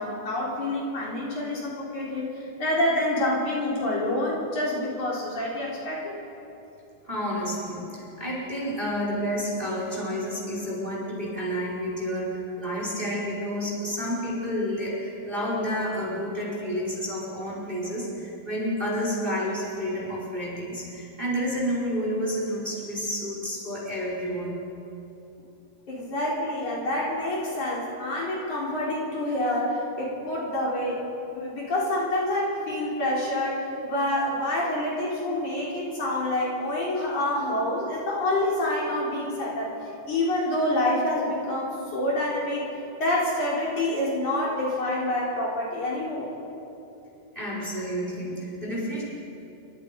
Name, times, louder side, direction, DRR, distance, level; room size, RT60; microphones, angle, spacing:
voice 1, 0.0-2.3 2.6-6.1 25.9-39.8 40.1-42.7 43.0-46.3, left 1 dB, 50° left, -5 dB, 5.1 m, -27 dB
voice 2, 7.0-24.6 47.3-49.0, equal, 10° right, -4 dB, 5.2 m, -30 dB
29.0 x 24.0 x 5.4 m, 2.9 s
omnidirectional pair, 4.6 m